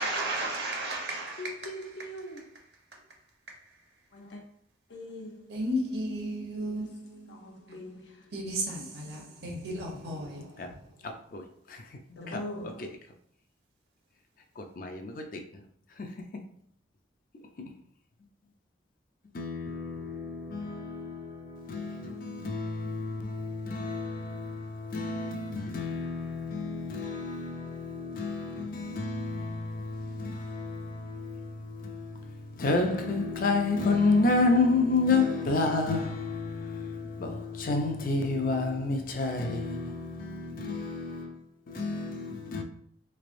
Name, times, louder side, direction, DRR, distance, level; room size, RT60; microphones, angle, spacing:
voice 1, 0.0-1.5 5.5-7.4 8.3-10.7, right 1 dB, 60° right, 0.9 m, -33 dB
voice 2, 1.4-2.4 4.1-4.4 4.9-5.7 6.8-8.4 9.4-10.8 12.1-12.9, left 1 dB, 70° left, 0.7 m, -43 dB
voice 3, 11.0-11.4 11.7-11.8 12.3-12.4 14.6-15.4 17.6-17.7 19.3-41.4 41.7-42.6, left 3 dB, 50° left, 0.4 m, -30 dB
3.3 x 3.3 x 2.5 m
head